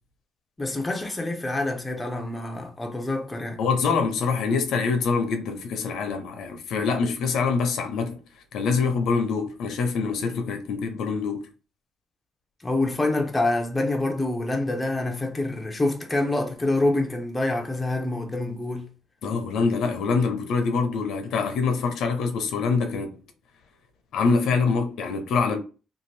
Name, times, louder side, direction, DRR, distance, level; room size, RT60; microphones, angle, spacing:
voice 1, 0.6-3.6 12.6-18.9, left 2 dB, 10° left, 0.5 m, -26 dB
voice 2, 3.6-8.2 8.5-11.5 19.2-23.2 24.1-25.6, left 5 dB, 70° left, 0.6 m, -25 dB
2.7 x 2.5 x 3.2 m
cardioid pair, 150°, 0 cm